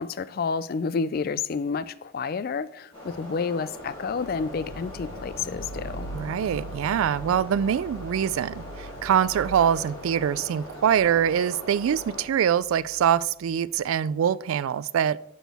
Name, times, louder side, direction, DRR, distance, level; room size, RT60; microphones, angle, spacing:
voice 1, 0.0-6.1, left 5 dB, 45° left, 0.3 m, -30 dB
sound 1, 2.9-12.2, left 1 dB, 25° left, 3.0 m, -41 dB
sound 2, 4.0-13.9, right 1 dB, 85° left, 0.9 m, -43 dB
voice 2, 6.1-15.2, right 8 dB, 75° right, 0.3 m, -24 dB
8.0 x 6.3 x 3.5 m
head